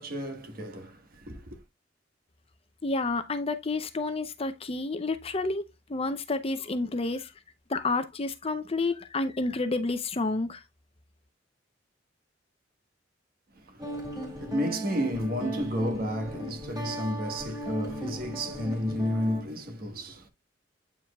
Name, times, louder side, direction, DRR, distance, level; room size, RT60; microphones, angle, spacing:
voice 1, 0.0-1.6 13.5-20.3, equal, 50° right, 1.4 m, -32 dB
voice 2, 2.8-5.6 5.9-7.3 7.7-10.6, left 3 dB, 30° left, 0.6 m, -30 dB
Guitar, 13.8-19.4, right 1 dB, 20° right, 2.1 m, -37 dB
8.7 x 5.0 x 2.2 m
head